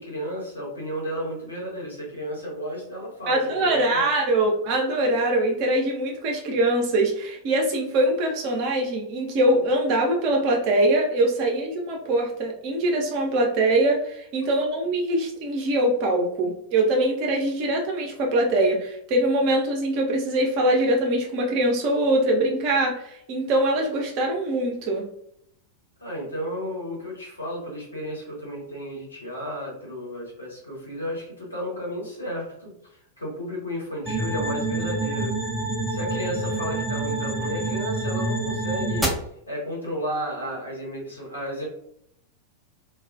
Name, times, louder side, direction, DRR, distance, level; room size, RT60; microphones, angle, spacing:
voice 1, 0.0-4.1 26.0-35.4 35.9-39.1 39.5-41.6, equal, 80° left, -4 dB, 1.1 m, -33 dB
voice 2, 3.3-25.0, right 1 dB, 45° right, 1 dB, 0.7 m, -23 dB
sound 1, 34.1-39.1, right 2 dB, ahead, 0.6 m, -27 dB
2.3 x 2.3 x 2.4 m, 0.72 s
figure-of-eight pair, 90°, 0 cm